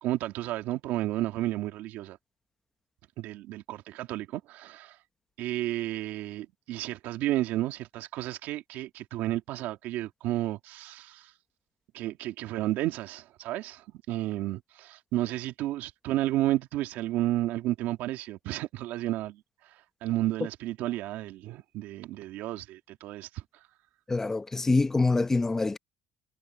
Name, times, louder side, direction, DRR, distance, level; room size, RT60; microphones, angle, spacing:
voice 1, 0.0-2.2 3.2-5.0 5.4-11.3 11.9-23.7, right 15 dB, 70° right, 2.3 m, -32 dB
voice 2, 24.1-25.8, left 3 dB, 15° left, 0.8 m, -25 dB
cardioid pair, 140°, 3 cm